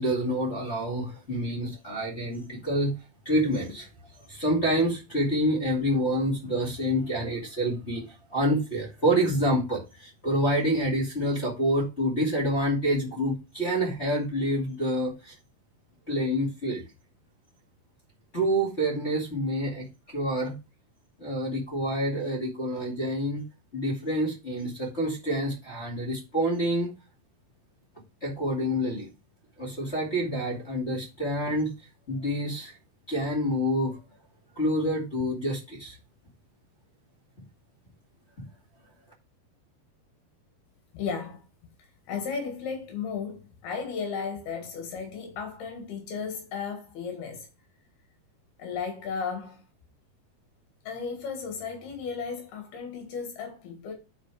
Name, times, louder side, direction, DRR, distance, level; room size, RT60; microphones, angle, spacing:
voice 1, 0.0-2.9 3.2-3.9 4.3-8.0 8.3-15.3 16.1-16.8 18.3-19.9 20.1-20.5 21.2-23.4 23.7-26.9 28.2-29.1 29.6-31.7 32.1-32.8 33.1-34.0 34.6-36.0, equal, 20° left, 1.9 m, -27 dB
voice 2, 40.9-41.4 42.1-47.5 48.6-49.6 50.9-53.9, left 6 dB, 75° left, 3.6 m, -34 dB
9.4 x 4.9 x 4.8 m
omnidirectional pair, 4.5 m